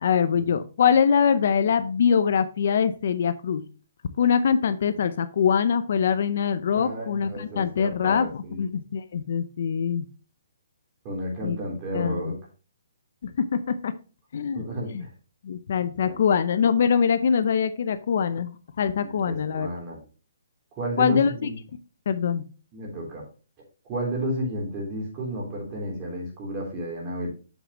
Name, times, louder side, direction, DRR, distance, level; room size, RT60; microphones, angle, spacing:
voice 1, 0.0-3.7 4.2-10.0 11.4-11.6 11.9-12.3 13.2-13.9 14.3-14.6 14.9-15.1 15.4-19.7 21.0-21.5 22.1-22.5, left 7 dB, 55° left, 12 dB, 0.6 m, -23 dB
voice 2, 6.7-8.7 11.1-12.3 14.5-15.1 16.0-16.2 19.0-20.0 20.8-21.6 22.7-23.2 23.9-27.3, right 1 dB, 25° right, -2 dB, 3.3 m, -32 dB
7.3 x 6.7 x 3.0 m, 0.35 s
hypercardioid pair, 160°, 0 cm